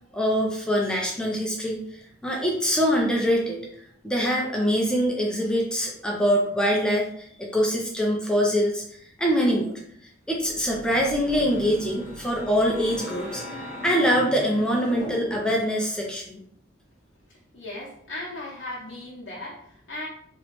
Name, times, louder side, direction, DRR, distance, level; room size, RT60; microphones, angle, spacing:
voice 1, 0.1-3.6 4.0-8.8 9.2-9.8 10.3-13.4 13.8-16.4, equal, 5° left, -2 dB, 0.5 m, -24 dB
sound 1, 10.4-15.7, left 1 dB, 35° left, 1.0 m, -38 dB
voice 2, 17.3-20.1, left 1 dB, 75° left, -6 dB, 0.7 m, -37 dB
3.0 x 2.9 x 2.9 m, 0.66 s
head